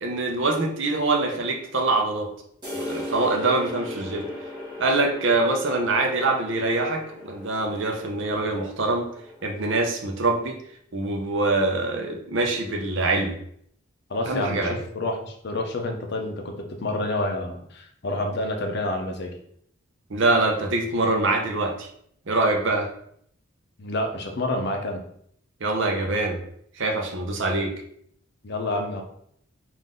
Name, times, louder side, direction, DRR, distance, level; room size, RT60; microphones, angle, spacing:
voice 1, 0.0-2.3 2.7-4.3 4.8-9.1 9.4-10.6 10.9-13.3 14.3-14.8 20.1-21.9 22.3-22.9 25.6-26.4 26.8-27.7, right 2 dB, 60° right, 2 dB, 0.6 m, -24 dB
sound 1, 2.6-10.2, left 1 dB, 20° right, 1.2 m, -38 dB
voice 2, 14.1-19.4 23.8-25.0 28.4-29.0, left 1 dB, 50° left, 3 dB, 0.6 m, -28 dB
3.7 x 2.5 x 3.7 m, 0.67 s
head